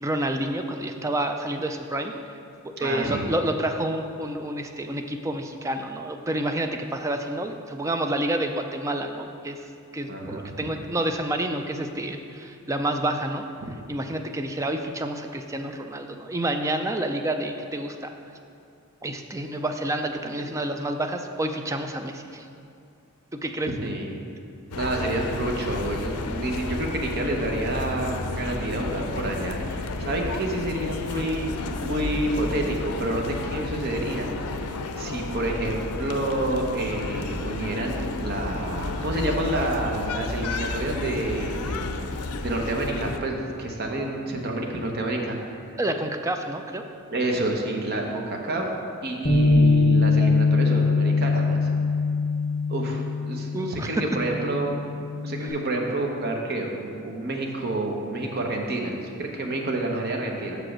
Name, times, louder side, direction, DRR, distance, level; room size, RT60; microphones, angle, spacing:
voice 1, 0.0-2.1 2.8-9.6 9.9-13.4 13.9-18.1 19.0-22.5 23.3-23.7 45.8-46.8 53.5-54.0 55.4-55.5, right 1 dB, 15° right, 5 dB, 0.3 m, -29 dB
voice 2, 2.8-3.3 10.1-10.7 23.8-24.1 24.7-41.8 42.4-45.4 47.1-48.7 49.0-51.7 52.7-54.8 55.2-60.6, right 1 dB, 45° right, 1 dB, 0.9 m, -29 dB
sound 1, 24.7-43.2, left 3 dB, 90° left, 0.5 m, -32 dB
Bass guitar, 49.2-55.5, left 3 dB, 35° left, 1.2 m, -22 dB
6.4 x 5.0 x 6.1 m, 2.6 s
head